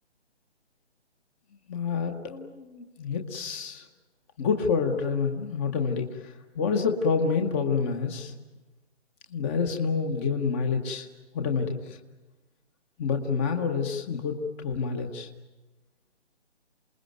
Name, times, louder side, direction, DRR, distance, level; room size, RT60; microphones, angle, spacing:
voice 1, 1.7-3.9 4.4-8.3 9.3-11.1 11.3-12.0 13.0-15.3, left 5 dB, 10° left, 4 dB, 0.8 m, -28 dB
27.5 x 20.0 x 9.2 m, 1.1 s
figure-of-eight pair, 155°, 35 cm